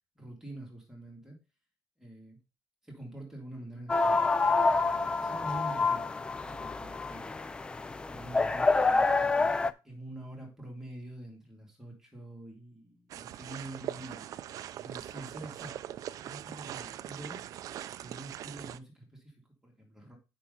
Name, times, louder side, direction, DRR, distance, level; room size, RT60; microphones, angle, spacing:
voice 1, 0.2-1.4 2.0-2.4 2.8-4.2 4.6-4.8 5.2-7.3 8.1-14.3 14.8-15.7 16.2-17.4 18.0-20.2, right 1 dB, 5° right, -2 dB, 2.3 m, -46 dB
sound 1, 3.9-9.7, left 3 dB, 15° left, 0.3 m, -27 dB
sound 2, 13.1-18.8, right 11 dB, 55° right, 0.4 m, -41 dB
8.9 x 5.4 x 3.7 m, 0.30 s
cardioid pair, 160°, 7 cm